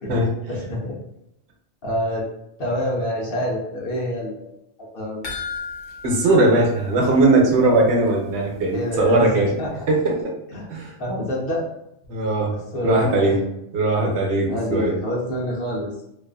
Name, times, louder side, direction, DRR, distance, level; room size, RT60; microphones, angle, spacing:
voice 1, 0.5-0.9 1.8-2.2 2.6-4.5 4.9-5.3 8.7-9.8 10.5-10.7 11.0-11.6 12.5-13.4 14.5-15.9, left 1 dB, 60° left, -3 dB, 0.8 m, -27 dB
sound 1, 5.2-7.8 8.1-8.2 8.6-8.7, left 5 dB, 85° left, 0.9 m, -35 dB
voice 2, 6.0-9.5 9.9-10.4 10.7-11.0 12.1-12.6 12.8-13.4 13.7-15.0, right 2 dB, 70° right, 0 dB, 0.9 m, -19 dB
2.5 x 2.4 x 2.3 m, 0.82 s
omnidirectional pair, 1.2 m